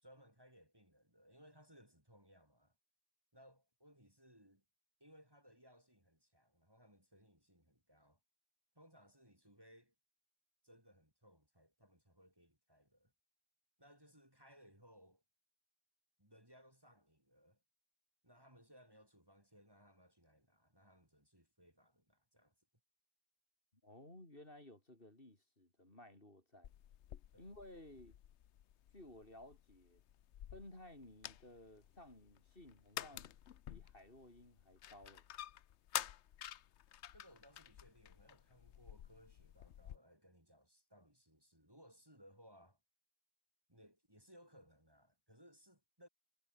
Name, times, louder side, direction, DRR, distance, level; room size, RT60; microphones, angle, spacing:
voice 1, 0.0-2.7 3.3-4.6 5.0-8.2 8.8-9.9 10.6-13.1 13.8-15.2 16.2-17.6 18.2-22.5 27.3-27.5 37.1-42.8 43.7-46.1, equal, 20° right, 5.5 m, -64 dB
voice 2, 23.8-26.7 27.4-28.2 28.9-30.0 30.5-33.3 33.7-35.2, left 1 dB, 45° left, 5.6 m, -57 dB
sound 1, 26.6-40.0, left 11 dB, 65° left, 1.0 m, -50 dB
omnidirectional pair, 1.3 m